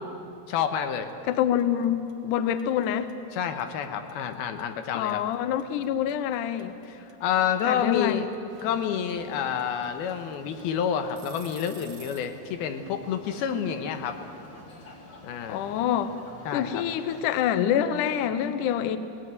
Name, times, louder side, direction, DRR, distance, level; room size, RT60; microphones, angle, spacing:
voice 1, 0.5-1.1 3.3-5.2 6.9-8.3 8.6-14.2 15.2-15.6 16.5-16.8, left 8 dB, 90° left, 7 dB, 3.0 m, -29 dB
sound 1, 1.1-1.3 1.6-12.4, right 6 dB, 60° right, 1.1 m, -50 dB
voice 2, 1.3-3.1 4.9-6.8 7.6-8.3 15.5-16.2 16.5-19.0, left 9 dB, 70° left, 11 dB, 2.1 m, -26 dB
sound 2, 8.5-17.5, left 2 dB, 30° left, 2.8 m, -49 dB
19.0 x 19.0 x 9.5 m, 2.7 s
omnidirectional pair, 4.3 m